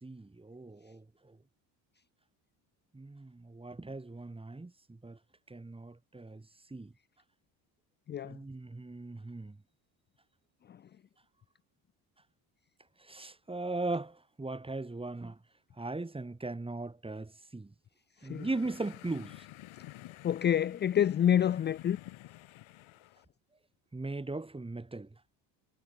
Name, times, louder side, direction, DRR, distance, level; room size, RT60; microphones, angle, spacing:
voice 1, 0.0-1.4 2.9-5.2 5.5-6.4 6.7-6.9 8.2-9.6 13.0-15.4 15.8-17.7 18.2-19.4 23.9-25.1, right 2 dB, 10° right, 1.8 m, -39 dB
sound 1, 18.2-23.3, left 16 dB, 70° left, 4.0 m, -51 dB
voice 2, 20.2-22.0, left 10 dB, 25° left, 0.3 m, -27 dB
supercardioid pair, 85°, 50 cm